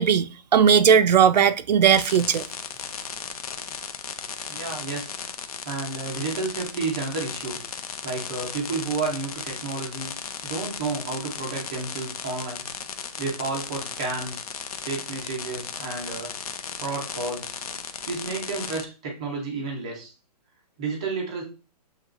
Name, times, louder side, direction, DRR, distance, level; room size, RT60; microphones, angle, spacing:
voice 1, 0.0-2.5, right 7 dB, 90° right, 0.5 m, -18 dB
sound 1, 1.9-18.8, left 6 dB, 60° left, 0.6 m, -36 dB
voice 2, 4.5-5.1 5.6-7.6 8.0-10.1 10.4-12.6 13.2-14.5 14.8-16.3 16.8-17.6 18.1-20.1 20.8-21.4, right 3 dB, 10° right, 0.4 m, -31 dB
7.4 x 2.9 x 2.4 m
hypercardioid pair, 180°, 21 cm